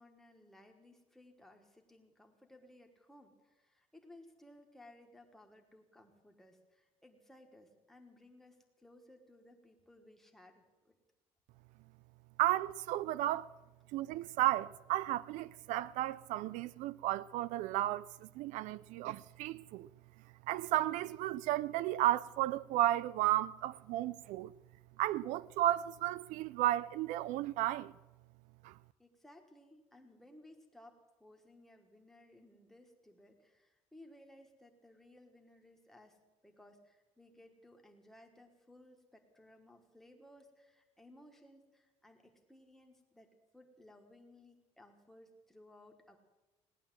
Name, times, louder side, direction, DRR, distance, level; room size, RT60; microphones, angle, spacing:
voice 1, 0.0-10.9 29.0-46.2, left 1 dB, 5° left, 1.5 m, -60 dB
voice 2, 12.4-13.5 13.9-19.9 20.5-24.5 25.0-27.9 28.6-28.7, right 14 dB, 85° right, 0.4 m, -33 dB
18.0 x 10.5 x 7.5 m
cardioid pair, 180°, 13 cm